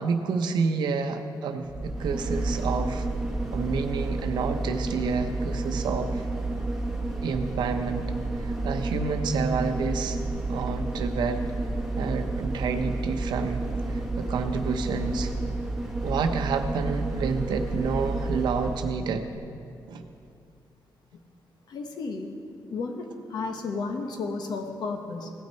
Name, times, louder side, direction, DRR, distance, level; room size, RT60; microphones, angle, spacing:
voice 1, 0.0-3.1 3.5-6.2 7.2-8.1 8.4-10.2 10.5-11.4 12.0-13.6 13.9-15.3 16.0-19.3 19.9-20.0, right 5 dB, 85° right, 7 dB, 0.7 m, -29 dB
sound 1, 1.7-19.0 19.3-19.4, right 2 dB, 5° right, 1.9 m, -30 dB
voice 2, 21.7-22.3 22.7-25.3, left 4 dB, 70° left, 4 dB, 1.2 m, -33 dB
16.5 x 6.1 x 4.4 m, 2.5 s
cardioid pair, 105°, 7 cm